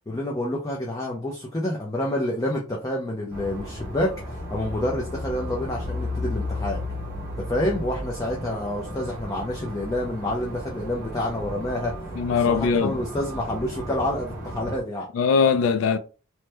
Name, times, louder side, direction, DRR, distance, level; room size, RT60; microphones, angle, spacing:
voice 1, 0.1-6.8 7.5-11.9 12.5-15.1, left 1 dB, 15° left, 0.5 m, -28 dB
sound 1, 3.3-14.8, left 1 dB, 50° left, 1.4 m, -34 dB
voice 2, 12.2-13.0 15.1-16.0, left 5 dB, 80° left, 0.3 m, -21 dB
3.0 x 2.1 x 3.2 m
head